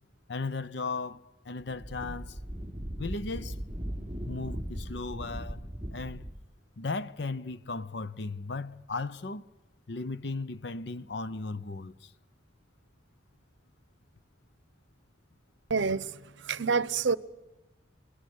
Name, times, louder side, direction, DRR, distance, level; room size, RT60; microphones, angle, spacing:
voice 1, 0.3-2.4 3.0-3.6 4.3-6.3 6.8-9.5 9.9-12.1, left 3 dB, 65° left, 0.8 m, -36 dB
Wind, 1.6-6.4, equal, 10° right, 3.1 m, -38 dB
voice 2, 15.7-16.1 16.4-17.2, right 5 dB, 80° right, 0.8 m, -27 dB
28.5 x 20.0 x 6.3 m
head